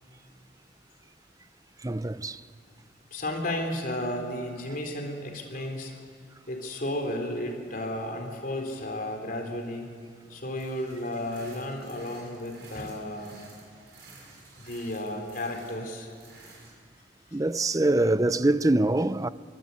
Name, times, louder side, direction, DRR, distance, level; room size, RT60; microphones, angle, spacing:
voice 1, 1.8-2.4 17.3-19.3, right 2 dB, 20° right, 0.6 m, -24 dB
voice 2, 3.1-5.9 6.5-9.9 10.3-13.4 14.6-16.1, left 1 dB, 50° left, 3.8 m, -33 dB
sound 1, 10.6-16.7, right 3 dB, 70° right, 6.3 m, -52 dB
25.0 x 24.0 x 8.4 m
head